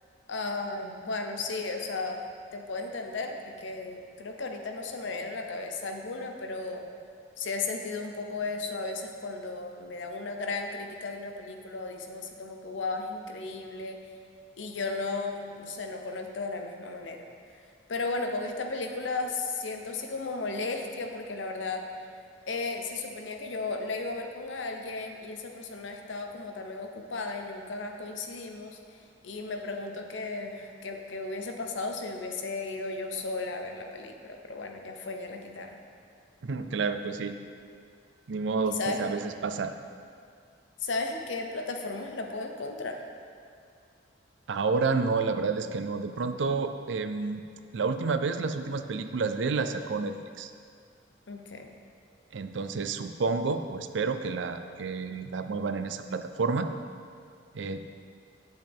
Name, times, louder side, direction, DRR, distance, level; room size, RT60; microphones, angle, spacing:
voice 1, 0.3-2.2 2.5-6.8 7.4-14.0 14.6-17.2 17.9-21.8 22.5-28.8 29.2-35.7 38.7-39.0 40.8-43.0 51.3-51.7, left 3 dB, 70° left, 4 dB, 0.8 m, -35 dB
voice 2, 36.4-37.3 38.3-39.7 44.5-47.4 47.7-50.5 52.3-56.7 57.5-57.8, right 4 dB, 70° right, 9 dB, 0.5 m, -30 dB
9.2 x 7.9 x 3.5 m, 2.2 s
head